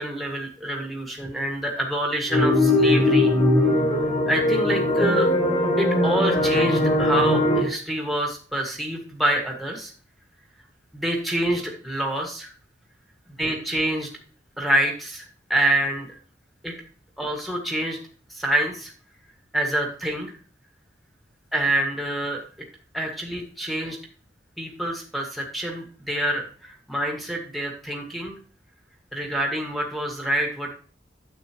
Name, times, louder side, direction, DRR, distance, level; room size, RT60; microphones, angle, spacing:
voice 1, 0.0-3.4 4.3-5.3 5.8-9.9 10.9-12.5 13.4-14.1 14.6-16.2 16.6-16.7 17.2-18.0 18.3-18.9 19.5-20.3 21.5-22.4 22.9-24.0 24.6-28.4 29.1-30.7, right 1 dB, ahead, 1 dB, 1.6 m, -26 dB
sound 1, 2.3-7.6, left 1 dB, 35° left, 4.1 m, -20 dB
9.4 x 7.9 x 3.0 m, 0.41 s
head